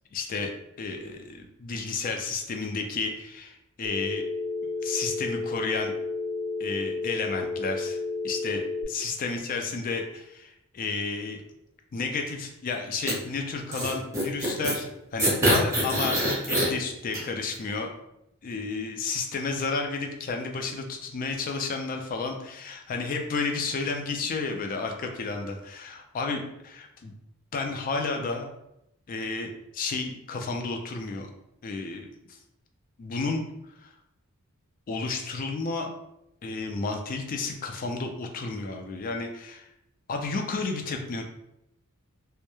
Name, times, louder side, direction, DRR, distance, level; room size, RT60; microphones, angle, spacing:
voice 1, 0.1-0.5 0.8-4.3 4.6-5.9 6.6-8.0 8.2-11.4 11.9-16.2 16.5-17.9 18.4-27.1 27.5-28.5 29.1-31.3 31.6-32.4 33.0-33.4 33.8-33.9 34.9-35.9 36.4-39.7 40.1-41.2, left 4 dB, 40° left, 4 dB, 0.3 m, -32 dB
Telephone, 3.8-8.8, left 3 dB, 35° right, 0.3 m, -31 dB
sound 1, 13.1-13.2 13.7-14.8 15.2-16.7 17.1-17.2, right 1 dB, 15° right, 0.7 m, -24 dB
2.2 x 2.0 x 2.9 m, 0.81 s
head